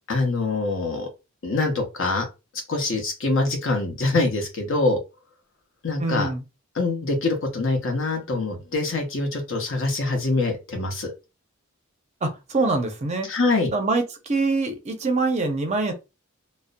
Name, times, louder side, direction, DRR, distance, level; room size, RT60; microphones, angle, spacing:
voice 1, 0.1-1.1 1.4-2.3 2.7-5.0 5.8-6.3 6.7-11.1 13.3-13.7, left 3 dB, 60° left, 0.8 m, -24 dB
voice 2, 6.0-6.4 12.2-13.3 13.7-15.9, right 3 dB, 30° right, 0.5 m, -24 dB
2.5 x 2.0 x 2.4 m
head